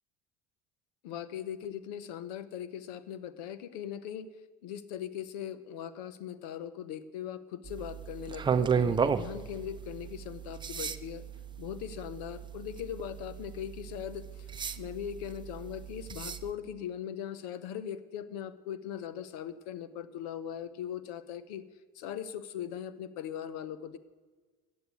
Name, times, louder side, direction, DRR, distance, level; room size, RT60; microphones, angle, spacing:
voice 1, 1.0-4.3 4.6-11.3 11.6-21.6 21.9-24.0, left 9 dB, 80° left, 15 dB, 0.9 m, -40 dB
sound 1, 7.7-16.5, right 6 dB, 25° right, 0.7 m, -34 dB
9.9 x 8.1 x 9.5 m, 1.3 s
supercardioid pair, 85°, 20 cm